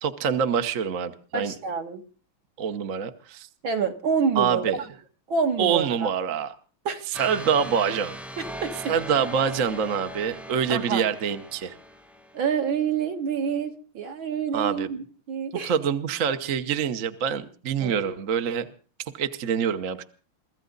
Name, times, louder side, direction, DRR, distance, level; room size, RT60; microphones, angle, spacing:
voice 1, 0.0-1.5 2.6-3.5 4.3-4.8 5.6-6.5 7.1-8.2 8.9-11.8 14.5-14.9 15.6-18.7 19.1-20.0, right 7 dB, 45° right, 8 dB, 1.2 m, -26 dB
voice 2, 1.3-2.0 3.6-4.8 5.3-6.1 6.9-7.0 8.4-8.9 10.7-11.0 12.3-15.0 15.3-15.7 17.8-18.1, right 6 dB, 65° right, 5 dB, 2.6 m, -27 dB
sound 1, 7.1-12.7, equal, ahead, 0.4 m, -39 dB
23.5 x 15.0 x 4.0 m, 0.39 s
omnidirectional pair, 2.4 m